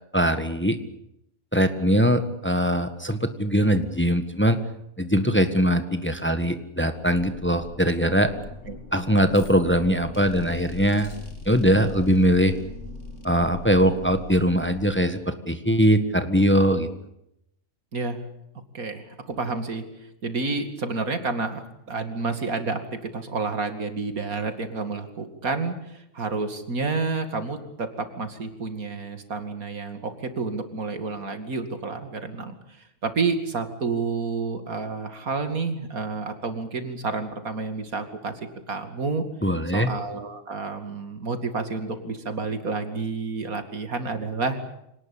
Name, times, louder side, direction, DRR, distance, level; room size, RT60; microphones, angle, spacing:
voice 1, 0.1-0.8 1.5-4.6 5.0-8.3 8.9-11.1 11.4-12.5 13.2-16.9 39.4-39.9, equal, 10° left, 9 dB, 1.5 m, -21 dB
sound 1, 6.9-15.3, left 2 dB, 60° left, 3.5 m, -41 dB
voice 2, 17.9-18.2 18.7-19.8 20.2-21.6 21.9-38.3 38.7-39.2 39.7-44.6, right 4 dB, 90° right, 8 dB, 2.9 m, -30 dB
26.0 x 19.0 x 8.6 m, 0.80 s
omnidirectional pair, 1.5 m